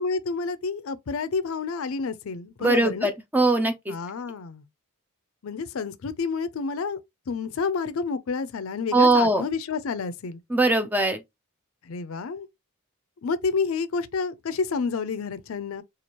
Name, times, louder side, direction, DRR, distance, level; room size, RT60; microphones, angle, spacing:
voice 1, 0.0-3.1 3.9-4.6 5.4-7.0 7.3-10.4 11.8-12.5 13.2-15.8, left 4 dB, 70° left, 0.5 m, -29 dB
voice 2, 2.6-3.9 8.9-9.4 10.5-11.2, right 2 dB, 10° right, 0.5 m, -21 dB
4.3 x 2.4 x 2.9 m
head